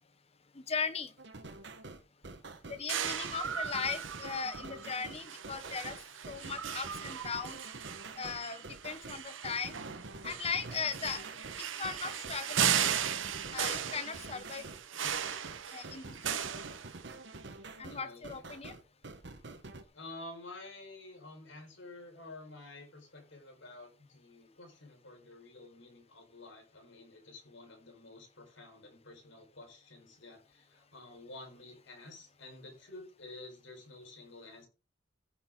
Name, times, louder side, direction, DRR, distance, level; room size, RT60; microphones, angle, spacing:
voice 1, 0.5-1.1 2.7-6.0 6.3-7.6 8.2-9.8 10.2-11.2 11.7-12.8 13.5-14.7 15.7-16.5 17.8-18.7, left 5 dB, 30° left, 1.1 m, -38 dB
sound 1, 1.2-19.8, right 2 dB, 60° right, 1.3 m, -47 dB
sound 2, 2.9-17.4, right 8 dB, 80° right, 1.0 m, -37 dB
voice 2, 17.8-18.2 19.9-34.7, left 2 dB, 75° left, 4.8 m, -50 dB
15.0 x 6.6 x 3.8 m
head